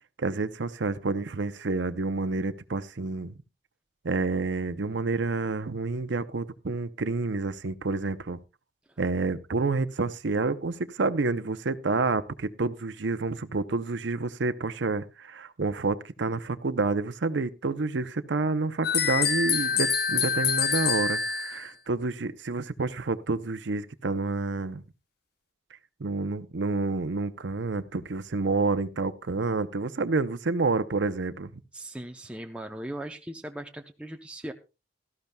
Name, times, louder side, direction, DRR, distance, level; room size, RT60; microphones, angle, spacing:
voice 1, 0.2-3.3 4.0-8.4 9.0-24.8 26.0-31.5, right 3 dB, 70° right, 0.7 m, -29 dB
sound 1, 18.8-21.7, left 6 dB, 55° left, 1.1 m, -26 dB
voice 2, 31.7-34.5, right 1 dB, 5° right, 0.6 m, -39 dB
17.5 x 13.5 x 2.3 m
head